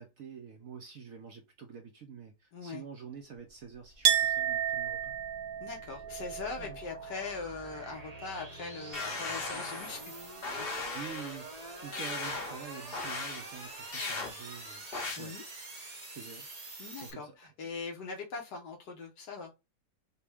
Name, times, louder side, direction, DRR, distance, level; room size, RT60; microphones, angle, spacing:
voice 1, 0.0-5.1 6.6-6.8 10.9-11.5 11.8-14.8 15.2-15.4 15.8-16.5 17.0-17.3, right 6 dB, 65° right, 0.9 m, -47 dB
voice 2, 2.5-2.8 5.6-10.1 10.6-10.8 15.2-15.4 16.8-19.5, left 4 dB, 70° left, 1.6 m, -41 dB
sound 1, 3.9-17.1, right 2 dB, 30° right, 0.8 m, -46 dB
Chink clink, 4.0-9.6 9.9-10.7, right 10 dB, 85° right, 1.3 m, -34 dB
sound 2, 8.9-10.0 10.4-11.4 11.9-12.6 12.9-13.4 13.9-14.3 14.9-15.2, left 3 dB, 40° left, 0.9 m, -37 dB
5.9 x 2.2 x 3.4 m
omnidirectional pair, 2.0 m